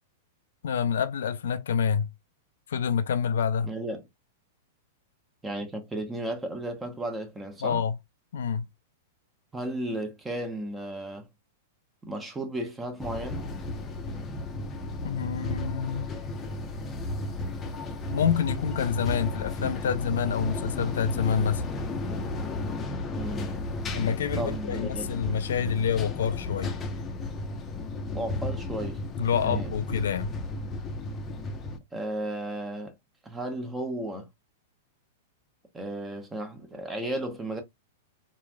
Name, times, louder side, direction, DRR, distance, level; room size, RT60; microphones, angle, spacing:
voice 1, 0.6-2.1 2.7-3.7 7.6-7.9 8.3-8.6 15.0-16.1 18.1-21.7 23.9-26.8 29.2-30.3, left 7 dB, 75° left, 0.4 m, -27 dB
voice 2, 3.6-4.0 5.4-7.8 9.5-11.3 12.0-13.4 23.1-23.5 24.4-25.2 28.1-29.0 29.3-29.7 31.9-33.0 33.2-34.3 35.7-37.6, right 1 dB, 10° right, 0.8 m, -34 dB
sound 1, 13.0-31.8, left 2 dB, 25° left, 0.6 m, -34 dB
3.1 x 2.6 x 2.2 m
hypercardioid pair, 115°, 0 cm